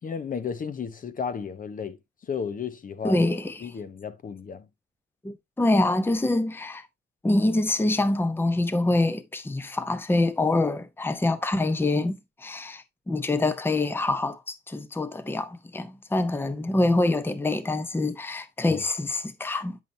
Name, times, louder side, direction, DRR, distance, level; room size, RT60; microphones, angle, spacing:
voice 1, 0.0-3.2 3.6-4.7 18.7-18.8, left 6 dB, 45° left, 0.9 m, -33 dB
voice 2, 3.0-3.7 5.2-6.9 7.2-19.8, left 2 dB, 10° left, 0.8 m, -25 dB
9.2 x 5.6 x 2.7 m
cardioid pair, 90°, 20 cm